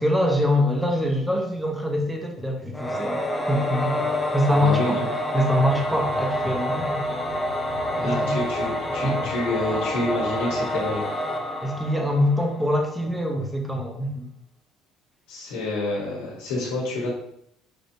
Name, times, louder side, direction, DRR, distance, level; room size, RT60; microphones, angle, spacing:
voice 1, 0.0-3.2 3.5-4.0 4.3-5.1 5.3-7.0 8.0-8.4 9.0-9.2 11.6-14.3, left 1 dB, 5° right, 1 dB, 0.9 m, -24 dB
Singing / Musical instrument, 2.7-12.8, equal, 10° left, 0.5 m, -27 dB
voice 2, 4.5-5.0 7.9-11.0 15.3-17.1, left 2 dB, 90° left, -4 dB, 1.3 m, -28 dB
sound 1, 5.5-11.0, right 2 dB, 65° right, 1.4 m, -43 dB
5.1 x 2.8 x 2.7 m, 0.72 s
supercardioid pair, 105°, 0 cm